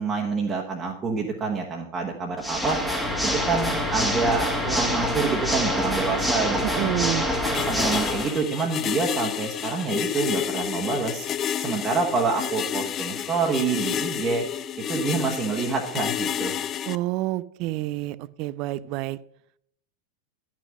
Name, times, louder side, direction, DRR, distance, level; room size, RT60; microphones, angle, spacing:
voice 1, 0.0-2.8 3.2-6.9 7.5-11.3 11.6-14.4 14.9-16.6, right 4 dB, 20° right, 1.3 m, -27 dB
Water / Mechanisms, 2.4-8.4, left 1 dB, ahead, 1.4 m, -26 dB
voice 2, 6.6-7.3 16.9-19.2, right 16 dB, 40° right, 0.4 m, -28 dB
sound 1, 7.4-17.0, left 9 dB, 30° left, 0.4 m, -30 dB
10.5 x 6.2 x 6.2 m
figure-of-eight pair, 90°, 0 cm